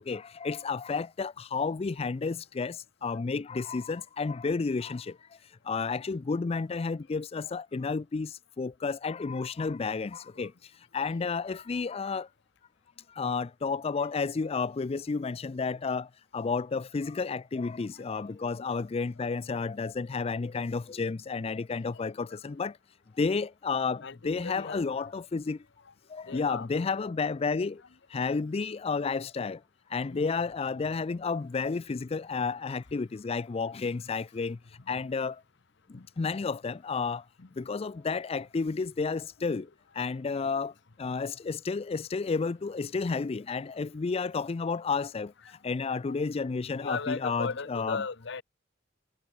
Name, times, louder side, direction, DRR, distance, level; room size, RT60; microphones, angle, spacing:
voice 1, 0.0-5.1 5.7-10.5 10.9-12.3 13.2-16.1 16.3-22.7 23.2-25.6 26.1-27.8 28.1-29.6 29.9-34.6 34.9-35.4 36.2-37.2 37.6-39.7 40.0-40.7 41.0-45.3 45.6-48.0, left 4 dB, 30° left, 0.4 m, -31 dB
voice 2, 24.0-25.1 26.3-26.7 28.2-28.3 30.0-30.3 35.9-36.1 37.4-37.5 46.1-46.2 46.7-48.4, left 4 dB, 65° left, 0.9 m, -37 dB
head